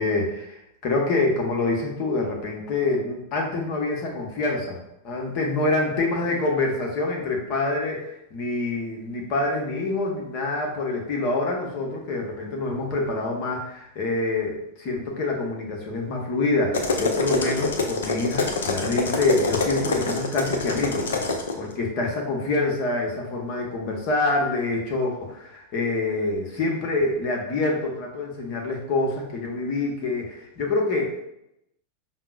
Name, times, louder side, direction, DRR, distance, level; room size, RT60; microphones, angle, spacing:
voice 1, 0.0-4.8 5.0-31.1, left 2 dB, 40° left, 0 dB, 0.9 m, -26 dB
sound 1, 16.7-21.5, left 3 dB, 65° left, 0.5 m, -26 dB
5.6 x 2.0 x 2.4 m, 0.80 s
figure-of-eight pair, 90°, 0 cm